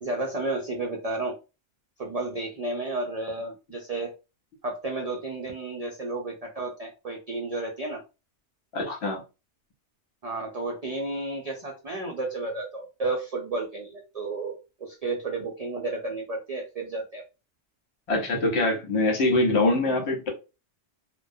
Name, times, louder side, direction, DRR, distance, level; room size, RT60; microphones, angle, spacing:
voice 1, 0.0-1.4 2.0-4.1 4.6-8.0 10.2-17.2, right 2 dB, 60° right, 0.4 m, -32 dB
voice 2, 8.7-9.2 18.1-20.3, left 2 dB, 70° left, 1.1 m, -24 dB
2.2 x 2.1 x 2.5 m
omnidirectional pair, 1.2 m